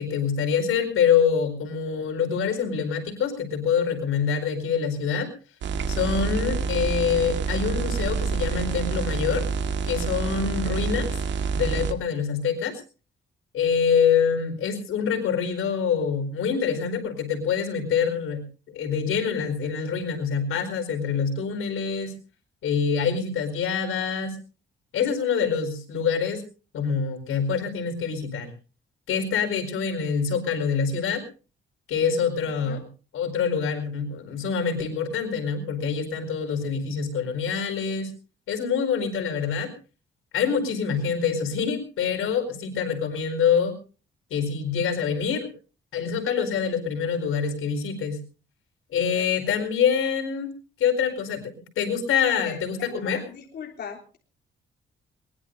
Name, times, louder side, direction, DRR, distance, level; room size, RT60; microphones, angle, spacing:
voice 1, 0.0-5.3 5.9-9.4 9.8-11.1 11.5-12.7 13.5-22.1 22.6-24.4 24.9-26.4 26.7-28.5 29.1-31.2 31.9-32.8 33.1-38.1 38.5-39.7 40.3-43.7 44.3-45.5 45.9-48.2 48.9-50.5 50.8-51.4 51.8-53.2, left 6 dB, 90° left, 5 dB, 4.6 m, -25 dB
sound 1, 5.6-11.9, right 5 dB, 65° right, 1.8 m, -27 dB
voice 2, 32.4-32.8 49.1-49.6 52.3-54.2, left 7 dB, 55° left, 0 dB, 3.5 m, -41 dB
22.0 x 20.5 x 2.7 m, 0.36 s
cardioid pair, 155°, 21 cm